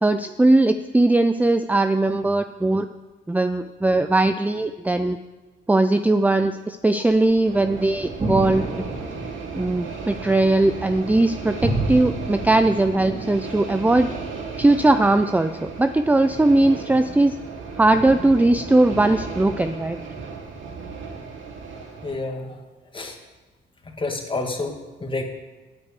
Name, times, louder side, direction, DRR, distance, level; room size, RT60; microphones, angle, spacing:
voice 1, 0.0-2.9 3.3-5.2 5.7-8.6 9.5-14.1 14.6-17.4 17.8-20.0, right 2 dB, 10° right, 9 dB, 0.5 m, -19 dB
sound 1, 7.1-13.2, right 2 dB, 25° right, 3.8 m, -30 dB
sound 2, 7.4-22.2, right 4 dB, 75° right, 2.4 m, -35 dB
voice 2, 22.0-22.6 22.9-23.2 23.9-25.2, left 3 dB, 25° left, 3 dB, 2.2 m, -29 dB
9.2 x 8.9 x 8.4 m, 1.2 s
cardioid pair, 90°, 20 cm